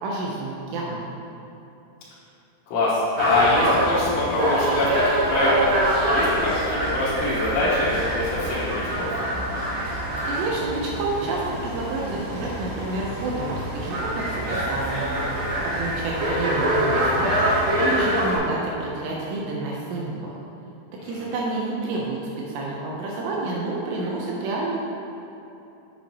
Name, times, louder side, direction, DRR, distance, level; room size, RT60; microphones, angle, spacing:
voice 1, 0.0-1.2 10.3-15.1 15.6-17.3 17.8-20.1 21.0-22.2 22.5-24.8, right 2 dB, 75° right, -3 dB, 2.7 m, -29 dB
voice 2, 2.7-5.7 6.1-9.1 21.0-21.3, left 2 dB, 80° left, -11 dB, 3.6 m, -24 dB
sound 1, 3.2-18.4, right 1 dB, 55° right, 2.5 m, -25 dB
8.4 x 7.0 x 2.9 m, 2.9 s
omnidirectional pair, 5.4 m